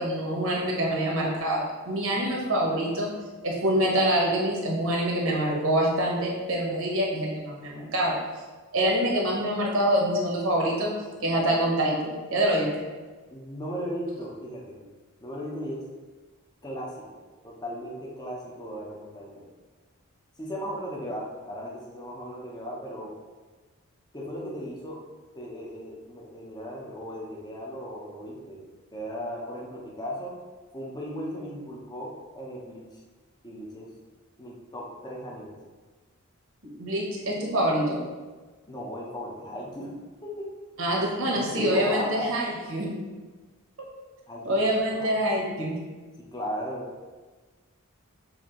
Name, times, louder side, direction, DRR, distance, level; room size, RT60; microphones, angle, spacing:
voice 1, 0.0-3.1 3.4-8.2 8.7-10.9 11.2-12.8 36.6-38.0 40.8-42.9 44.4-45.7, right 1 dB, 65° right, -2 dB, 1.0 m, -25 dB
voice 2, 13.3-14.8 15.2-15.8 16.6-19.5 20.4-23.1 24.1-25.0 25.3-28.6 28.9-30.3 30.7-33.0 33.4-33.9 34.4-35.5 38.7-39.9 40.2-40.5 41.3-42.4 44.3-44.6 44.9-45.1 46.2-46.9, equal, 20° left, -3 dB, 0.8 m, -36 dB
6.4 x 2.7 x 3.0 m, 1.3 s
head